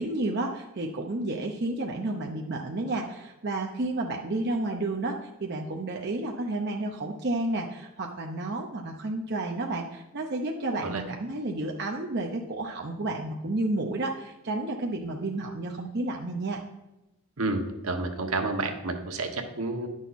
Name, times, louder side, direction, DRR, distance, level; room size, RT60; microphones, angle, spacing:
voice 1, 0.0-16.6, right 2 dB, 50° right, 1 dB, 0.7 m, -31 dB
voice 2, 17.4-19.9, right 2 dB, 75° right, 4 dB, 1.2 m, -30 dB
10.5 x 6.3 x 4.2 m, 0.98 s
head